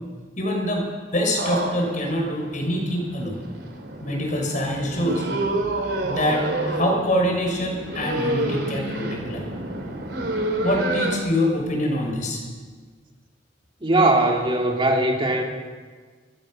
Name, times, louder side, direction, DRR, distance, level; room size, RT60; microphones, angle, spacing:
voice 1, 0.4-0.8 1.1-3.4 4.0-5.2 6.0-9.5 10.6-12.4, equal, 45° left, 1 dB, 5.9 m, -25 dB
sound 1, 1.4-11.2, right 1 dB, 70° right, 3.7 m, -29 dB
voice 2, 13.8-15.4, right 2 dB, 30° right, 1 dB, 2.5 m, -20 dB
27.0 x 15.0 x 6.5 m, 1.5 s
head